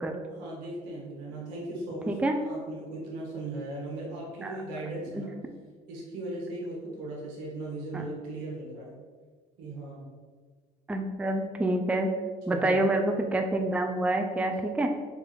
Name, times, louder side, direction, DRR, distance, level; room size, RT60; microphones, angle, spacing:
voice 1, 0.3-5.3 5.9-9.0 9.6-10.1 12.5-12.9, right 2 dB, 90° right, -3 dB, 1.3 m, -38 dB
voice 2, 2.1-2.4 4.4-4.6 5.2-5.3 7.9-8.0 10.9-12.1 12.5-14.9, right 1 dB, 5° right, 4 dB, 0.4 m, -27 dB
4.0 x 2.5 x 4.4 m, 1.5 s
supercardioid pair, 85°, 20 cm